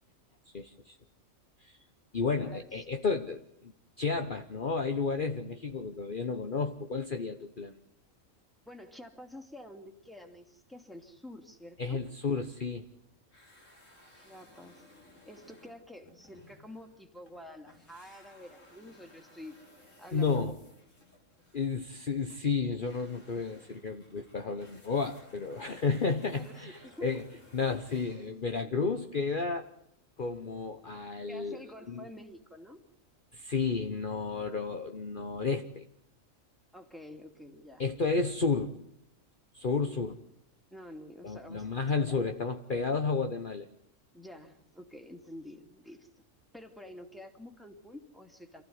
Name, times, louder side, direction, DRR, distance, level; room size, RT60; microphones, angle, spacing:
voice 1, 0.5-1.0 1.6-1.8 2.1-7.7 11.8-12.9 20.1-20.5 21.5-27.3 27.5-29.7 30.2-31.6 31.9-32.0 33.3-35.9 37.8-38.8 39.5-40.2 41.2-43.7, left 4 dB, 40° left, 6 dB, 1.3 m, -32 dB
voice 2, 2.2-2.7 8.7-12.0 14.1-14.9 15.3-19.6 20.0-20.5 23.5-23.6 26.3-27.3 31.3-32.8 36.7-37.8 40.7-41.7 42.0-42.2 44.1-46.2 46.5-48.6, left 1 dB, ahead, 5 dB, 2.8 m, -48 dB
sound 1, 13.3-17.4 17.7-28.5, left 1 dB, 75° left, 6.0 m, -59 dB
28.5 x 15.5 x 9.5 m, 0.77 s
omnidirectional pair, 1.3 m